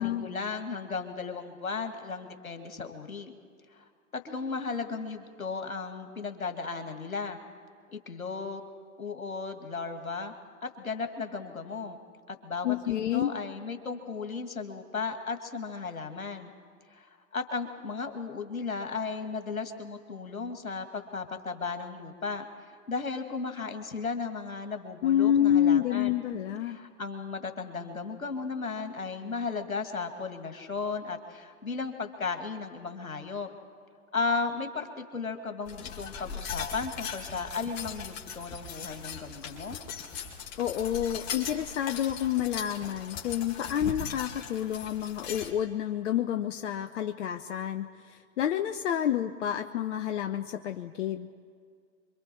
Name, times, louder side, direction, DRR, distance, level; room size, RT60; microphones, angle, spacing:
voice 1, 0.0-3.3 3.7-3.9 4.2-7.4 7.9-8.7 9.0-10.3 10.6-12.0 12.3-16.5 16.9-22.5 22.9-26.2 26.7-33.5 34.1-39.8, left 4 dB, 90° left, 6 dB, 2.2 m, -35 dB
voice 2, 12.6-13.3 25.0-26.8 40.6-51.3, left 10 dB, 60° left, 7 dB, 0.9 m, -28 dB
sound 1, 35.7-45.5, left 6 dB, 35° left, 2.5 m, -39 dB
26.5 x 24.0 x 4.6 m, 2.1 s
hypercardioid pair, 110°, 41 cm